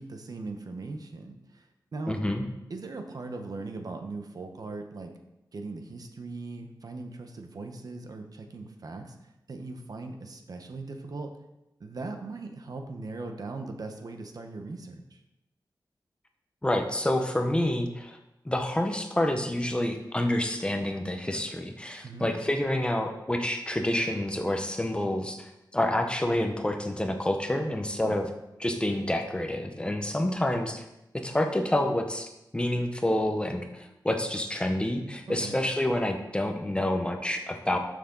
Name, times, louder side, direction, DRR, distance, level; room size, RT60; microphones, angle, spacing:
voice 1, 0.0-2.2 2.7-5.1 5.5-11.3 11.8-15.2 22.0-22.3 28.0-28.2 35.3-35.6, right 3 dB, 55° right, 5 dB, 1.1 m, -39 dB
voice 2, 2.1-2.4 16.6-18.2 18.4-28.3 28.6-30.9 31.2-37.8, left 1 dB, 15° left, 4 dB, 0.9 m, -28 dB
12.5 x 6.7 x 3.9 m, 0.92 s
wide cardioid pair, 130°, 8 cm